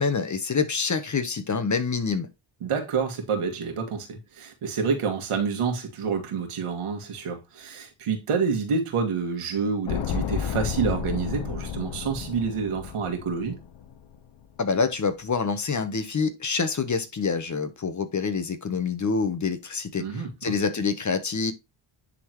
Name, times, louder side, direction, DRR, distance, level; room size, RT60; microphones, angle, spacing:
voice 1, 0.0-2.3 14.6-21.5, left 5 dB, 35° left, 1.1 m, -26 dB
voice 2, 2.6-13.6 20.0-20.5, right 5 dB, 85° right, 2.0 m, -28 dB
sound 1, 9.9-14.1 14.4-14.5, left 8 dB, 65° left, 0.8 m, -32 dB
9.9 x 3.8 x 3.1 m
cardioid pair, 90°, 50 cm